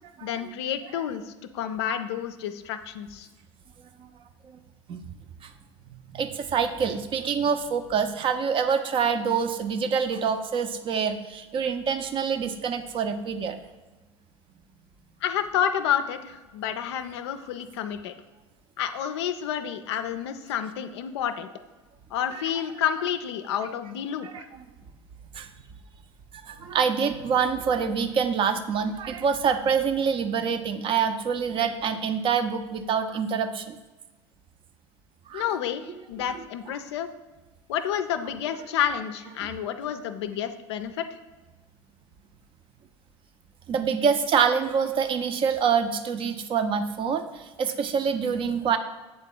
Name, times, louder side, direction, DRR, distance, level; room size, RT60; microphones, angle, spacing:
voice 1, 0.2-3.3 15.2-18.1 18.8-21.5 22.1-24.5 35.3-37.1 37.7-41.0, left 9 dB, 65° left, 9 dB, 0.4 m, -29 dB
voice 2, 6.1-13.6 22.3-22.4 24.2-24.6 25.3-25.5 26.4-33.8 35.3-35.4 43.7-48.8, right 6 dB, 35° right, 9 dB, 0.5 m, -26 dB
7.7 x 3.6 x 3.8 m, 1.2 s
figure-of-eight pair, 70°, 15 cm